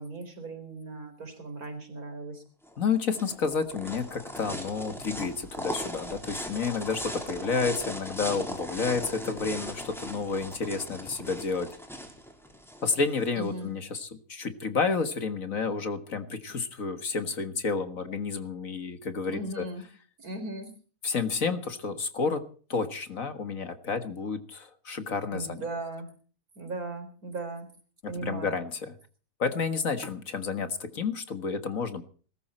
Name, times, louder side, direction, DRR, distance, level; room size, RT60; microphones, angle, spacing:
voice 1, 0.0-2.4 13.3-13.7 19.3-19.8 20.2-20.7 25.3-26.1 26.6-27.7 28.1-28.6, right 2 dB, 65° right, 6 dB, 4.6 m, -37 dB
sound 1, 2.7-13.5, equal, ahead, 3.8 m, -39 dB
voice 2, 2.8-11.7 12.8-19.7 21.0-22.4 22.7-25.6 28.0-28.9 29.4-32.0, left 5 dB, 60° left, 9 dB, 2.0 m, -30 dB
20.5 x 13.5 x 4.4 m, 0.41 s
omnidirectional pair, 1.7 m